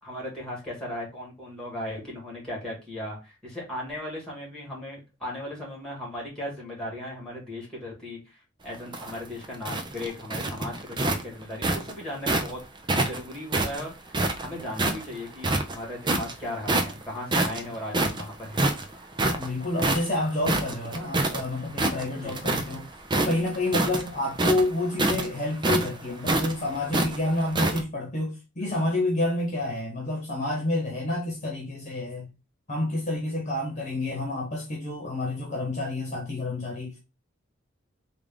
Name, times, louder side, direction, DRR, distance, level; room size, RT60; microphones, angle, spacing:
voice 1, 0.0-12.6 13.1-18.7 22.2-22.4, left 1 dB, 5° left, 1.8 m, -37 dB
sound 1, 8.7-12.5 12.9-15.0 15.4-16.3 16.7-17.0 17.3-21.4 21.7-22.8 23.0-27.8, right 2 dB, 25° right, 0.4 m, -26 dB
voice 2, 19.2-32.3 32.7-37.0, left 2 dB, 35° left, 1.1 m, -29 dB
3.5 x 2.5 x 3.4 m
head